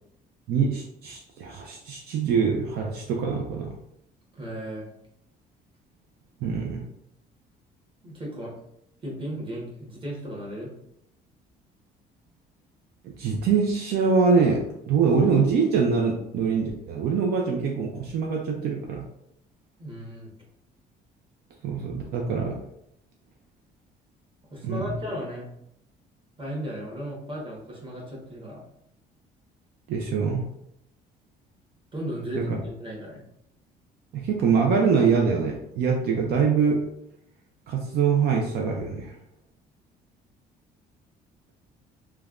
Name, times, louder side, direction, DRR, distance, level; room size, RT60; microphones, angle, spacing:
voice 1, 0.5-3.7 6.4-6.8 13.0-19.0 21.6-22.6 24.6-24.9 29.9-30.4 32.3-32.6 34.1-36.8 37.7-39.2, right 5 dB, 70° right, 0 dB, 0.5 m, -24 dB
voice 2, 4.3-4.9 8.0-8.5 9.0-10.7 19.8-20.3 24.5-25.5 26.4-28.6 31.9-33.2, equal, 30° right, -4 dB, 1.2 m, -35 dB
3.2 x 2.2 x 2.4 m, 0.77 s
cardioid pair, 110°, 17 cm